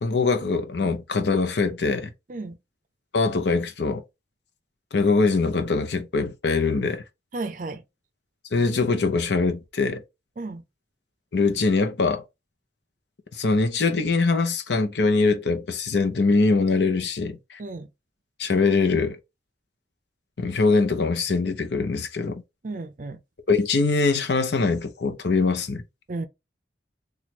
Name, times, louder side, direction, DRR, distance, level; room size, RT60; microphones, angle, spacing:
voice 1, 0.0-2.1 3.1-4.0 4.9-7.0 8.5-10.0 11.3-12.2 13.3-17.6 18.4-19.2 20.4-22.4 23.5-25.8, left 3 dB, 70° left, 0.7 m, -23 dB
voice 2, 7.3-7.8 10.4-10.6 17.6-17.9 22.6-23.2 26.1-26.3, right 3 dB, 45° right, 0.5 m, -33 dB
3.0 x 2.4 x 4.2 m
head